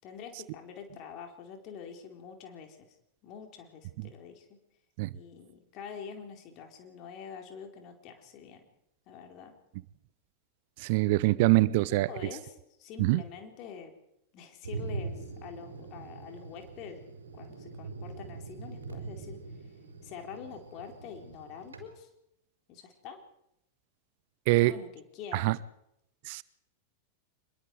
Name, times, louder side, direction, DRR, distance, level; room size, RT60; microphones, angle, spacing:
voice 1, 0.0-3.0 3.2-4.6 5.1-8.6 9.1-9.5 11.8-13.9 14.3-17.0 17.3-19.7 20.0-22.1 22.7-23.2 24.6-25.6, left 7 dB, 40° left, 3 dB, 4.6 m, -46 dB
voice 2, 10.8-12.1 13.0-13.2 24.5-24.7 25.3-25.6 26.2-26.4, right 19 dB, 50° right, 20 dB, 0.7 m, -24 dB
Thunder, 14.6-21.9, right 4 dB, 70° right, 4.0 m, -42 dB
26.0 x 22.0 x 4.9 m, 0.80 s
figure-of-eight pair, 90°, 0 cm